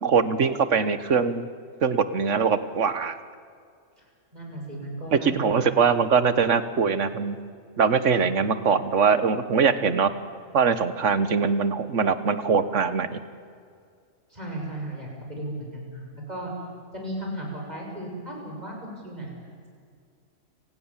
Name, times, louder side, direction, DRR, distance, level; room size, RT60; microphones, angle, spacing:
voice 1, 0.0-1.5 1.8-3.2 5.1-7.4 7.8-10.1 10.5-13.2, right 5 dB, 65° right, 12 dB, 1.6 m, -22 dB
voice 2, 4.3-5.7 14.3-16.5 16.9-19.3, right 1 dB, 30° right, -1 dB, 6.9 m, -35 dB
29.5 x 18.5 x 7.4 m, 2.2 s
omnidirectional pair, 1.4 m